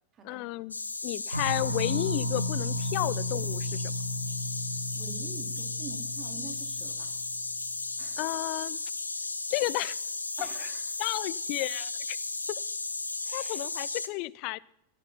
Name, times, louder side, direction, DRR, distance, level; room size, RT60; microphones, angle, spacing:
voice 1, 0.2-0.8 1.0-3.8 8.2-8.8 9.5-10.0 10.6-10.7 11.0-12.2 13.3-14.6, left 22 dB, 45° left, 21 dB, 0.4 m, -32 dB
sound 1, 0.7-14.1, left 3 dB, 80° left, 0.7 m, -35 dB
sound 2, 1.3-7.7, left 1 dB, 90° right, 0.7 m, -34 dB
voice 2, 4.9-7.1 8.0-8.2 10.4-10.9 13.2-13.6, right 5 dB, 30° right, 4 dB, 2.6 m, -46 dB
13.5 x 10.5 x 5.6 m, 0.81 s
figure-of-eight pair, 90°, 0 cm